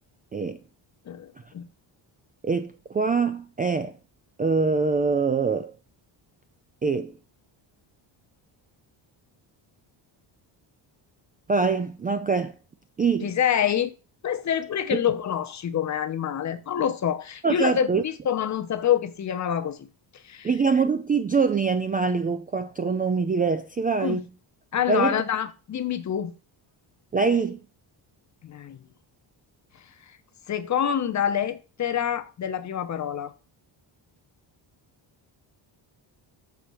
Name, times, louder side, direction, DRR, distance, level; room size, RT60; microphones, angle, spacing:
voice 1, 1.1-1.7 13.2-13.9 14.2-19.8 20.2-20.5 24.0-24.2 24.7-26.3 28.4-28.8 30.5-33.3, left 9 dB, 40° left, 0.8 m, -26 dB
voice 2, 2.4-3.9 4.4-5.7 6.8-7.1 11.5-12.5 13.0-13.3 14.9-15.0 17.4-18.0 20.4-24.3 24.9-25.2 27.1-27.6, right 5 dB, 20° right, 0.3 m, -24 dB
7.1 x 4.3 x 6.3 m
cardioid pair, 165°, 46 cm